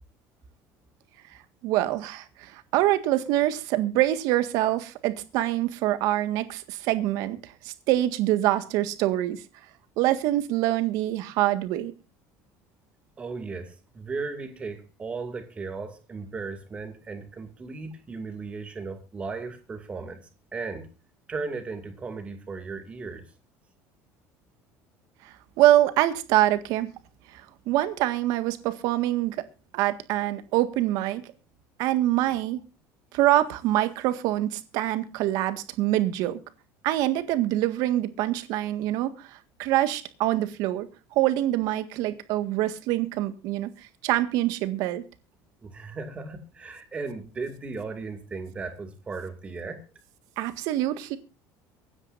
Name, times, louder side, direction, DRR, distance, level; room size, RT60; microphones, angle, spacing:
voice 1, 1.6-9.4 10.0-11.9 25.2-26.9 27.3-29.4 29.7-31.2 31.8-32.6 33.1-36.4 36.8-45.0 50.4-51.2, right 14 dB, 60° right, 1.7 m, -25 dB
voice 2, 13.2-20.9 21.3-23.2 45.6-49.8, right 4 dB, 15° right, 2.4 m, -36 dB
24.0 x 9.8 x 2.6 m
cardioid pair, 170°, 7 cm